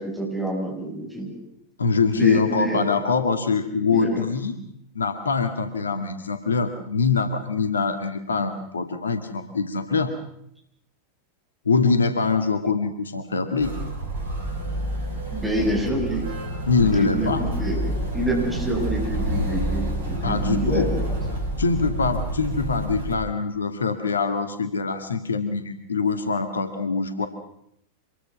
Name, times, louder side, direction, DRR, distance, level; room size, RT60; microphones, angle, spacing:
voice 1, 0.0-1.4 2.1-2.9 3.9-4.2 15.3-16.3 16.8-21.0, right 1 dB, 5° right, 0 dB, 7.1 m, -27 dB
voice 2, 1.8-4.6 5.0-10.1 11.7-13.7 16.7-17.5 20.2-20.9 21.6-27.3, left 4 dB, 75° left, 8 dB, 2.0 m, -23 dB
Motor vehicle (road), 13.6-23.2, right 1 dB, 65° right, 6.0 m, -28 dB
26.0 x 21.5 x 6.1 m, 0.73 s
figure-of-eight pair, 90°, 0 cm